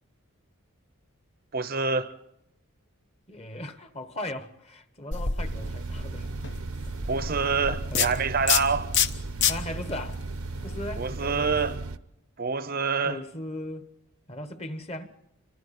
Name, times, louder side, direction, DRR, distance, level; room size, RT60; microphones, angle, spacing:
voice 1, 1.5-2.1 7.1-8.9 11.0-11.8 12.4-13.2, right 4 dB, 45° right, 0.7 m, -26 dB
voice 2, 3.3-6.3 7.9-8.3 9.5-10.2 10.6-11.8 13.0-13.9 14.3-15.1, left 1 dB, 30° left, 1.3 m, -38 dB
sound 1, 5.1-11.7, left 7 dB, 55° left, 1.0 m, -30 dB
sound 2, 5.4-12.0, right 3 dB, 75° right, 0.8 m, -36 dB
28.5 x 24.5 x 4.3 m
head